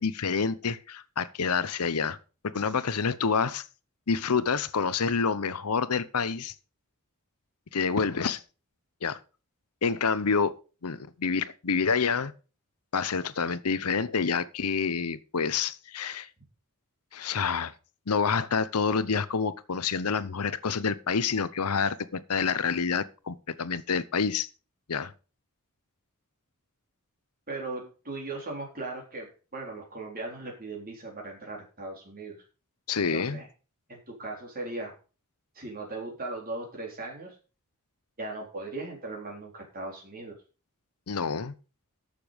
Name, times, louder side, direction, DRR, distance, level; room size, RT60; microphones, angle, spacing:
voice 1, 0.0-2.2 2.5-3.6 4.1-6.5 7.7-8.4 9.0-9.2 9.8-12.3 12.9-16.3 17.1-17.7 18.1-24.5 24.9-25.1 32.9-33.4 41.1-41.5, left 5 dB, 85° left, 0.8 m, -28 dB
voice 2, 27.5-32.4 33.1-33.5 33.9-34.9 35.6-37.4 38.2-40.4, right 2 dB, 40° right, 3.8 m, -38 dB
13.5 x 6.9 x 5.2 m
head